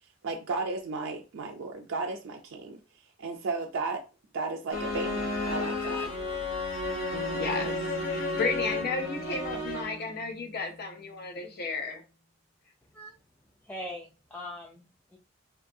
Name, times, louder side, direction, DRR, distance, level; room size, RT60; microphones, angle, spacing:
voice 1, 0.2-2.8 3.2-4.0 4.3-6.1, right 3 dB, 70° right, 0.4 m, -34 dB
sound 1, 4.7-10.1, left 2 dB, 90° left, 1.0 m, -32 dB
Bass guitar, 7.1-11.5, right 1 dB, 35° left, 1.0 m, -43 dB
voice 2, 7.3-7.8 8.1-12.0, left 4 dB, 55° left, 0.6 m, -33 dB
voice 3, 13.6-15.2, left 1 dB, 5° left, 0.3 m, -41 dB
2.7 x 2.3 x 2.6 m
head